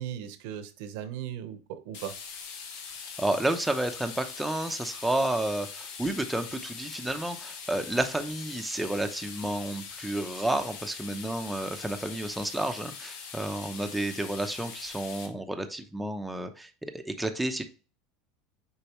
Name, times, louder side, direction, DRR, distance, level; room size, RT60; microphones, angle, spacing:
voice 1, 0.0-2.1, right 10 dB, 70° right, 0.9 m, -37 dB
sound 1, 1.9-15.3, left 6 dB, 80° left, 1.5 m, -42 dB
voice 2, 3.2-17.6, right 1 dB, 5° right, 0.8 m, -31 dB
6.7 x 4.6 x 3.1 m
supercardioid pair, 140°, 0 cm